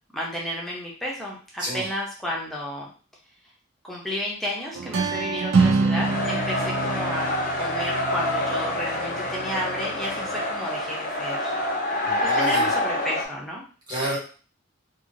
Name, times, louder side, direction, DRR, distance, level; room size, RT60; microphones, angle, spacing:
voice 1, 0.1-2.9 3.8-7.3 7.6-11.5 12.2-13.6, equal, ahead, -4 dB, 0.6 m, -32 dB
sound 1, 4.7-10.4, right 4 dB, 75° right, 0.4 m, -27 dB
sound 2, 6.0-13.2, left 1 dB, 45° left, 0.6 m, -27 dB
voice 2, 12.0-12.7 13.9-14.2, right 1 dB, 20° right, -6 dB, 1.1 m, -29 dB
2.8 x 2.4 x 2.5 m, 0.39 s
head